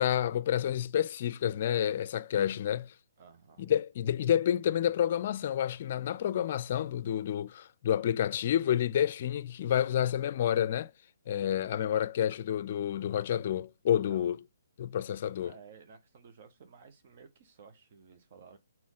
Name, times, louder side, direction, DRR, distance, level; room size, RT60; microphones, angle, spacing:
voice 1, 0.0-2.9 3.6-10.9 11.3-14.4 14.8-15.5, left 10 dB, 45° left, 0.5 m, -29 dB
voice 2, 3.2-3.7 14.1-14.3 15.4-18.6, right 6 dB, 45° right, 1.3 m, -54 dB
6.2 x 4.5 x 5.7 m
figure-of-eight pair, 140°, 0 cm